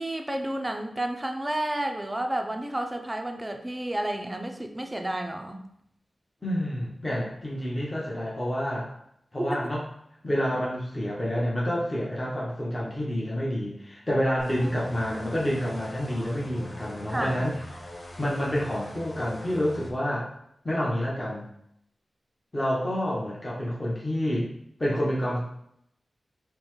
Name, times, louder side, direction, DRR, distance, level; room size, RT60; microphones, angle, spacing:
voice 1, 0.0-5.6 9.4-9.6 14.6-14.7 17.1-17.4, right 1 dB, 20° right, 5 dB, 0.4 m, -31 dB
voice 2, 6.4-8.9 9.3-9.9 10.2-17.9 18.2-20.3 20.6-21.5 22.5-24.5 24.8-25.4, equal, 25° left, -5 dB, 1.0 m, -28 dB
sound 1, 14.4-19.9, equal, 60° left, 0.9 m, -42 dB
5.3 x 2.1 x 3.1 m, 0.75 s
wide cardioid pair, 90°, 0 cm